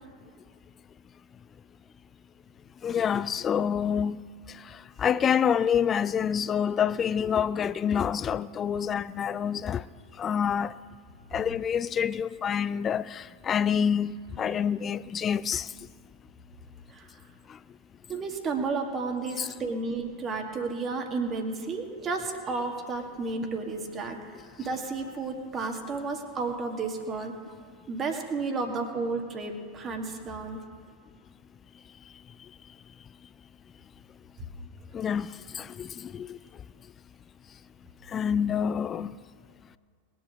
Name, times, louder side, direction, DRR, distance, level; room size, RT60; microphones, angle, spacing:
voice 1, 2.8-4.2 5.0-9.8 10.2-10.7 11.3-15.7 19.4-19.5 34.9-35.3 35.5-36.4 38.1-39.1, left 8 dB, 25° left, 0.4 m, -27 dB
voice 2, 18.1-24.2 24.6-27.3 27.9-30.6, right 3 dB, 25° right, 2.0 m, -32 dB
20.5 x 7.7 x 6.2 m
figure-of-eight pair, 90°, 0 cm